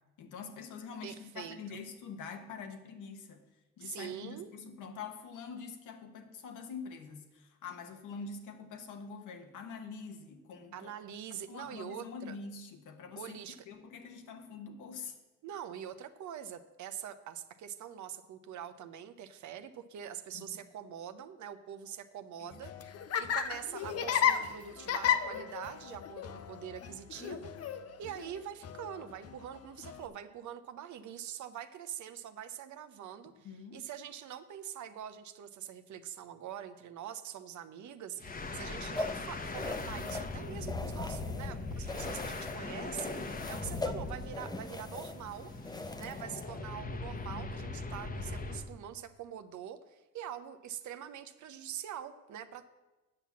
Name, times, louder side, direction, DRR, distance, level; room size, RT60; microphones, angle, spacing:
voice 1, 0.2-3.5 3.8-10.9 11.5-13.4 13.7-15.2 20.3-20.4 22.4-22.5 33.4-33.8 47.3-47.7, left 5 dB, 85° left, 5 dB, 1.3 m, -45 dB
voice 2, 1.0-1.8 3.8-4.5 10.7-12.4 13.1-13.6 15.4-45.5 46.0-52.7, right 9 dB, 70° right, 10 dB, 0.8 m, -44 dB
Laughter, 22.5-30.1, left 9 dB, 55° left, 0.7 m, -34 dB
sound 1, 38.2-48.7, left 3 dB, 30° left, 0.9 m, -40 dB
sound 2, 38.9-41.5 41.8-42.6 42.9-46.4, left 2 dB, 15° left, 0.7 m, -41 dB
8.9 x 5.8 x 7.2 m, 1.1 s
cardioid pair, 90°, 30 cm